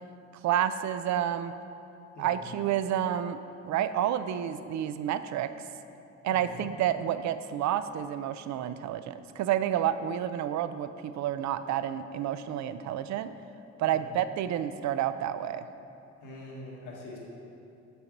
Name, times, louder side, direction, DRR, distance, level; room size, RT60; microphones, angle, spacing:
voice 1, 0.4-1.5 2.2-3.4 3.7-5.5 6.2-13.3 13.8-15.7, right 10 dB, 65° right, 12 dB, 0.5 m, -29 dB
voice 2, 2.1-2.5 6.3-6.7 13.8-14.1 16.2-17.2, left 1 dB, 80° left, -3 dB, 1.6 m, -44 dB
6.9 x 5.9 x 5.1 m, 2.7 s
cardioid pair, 90°, 30 cm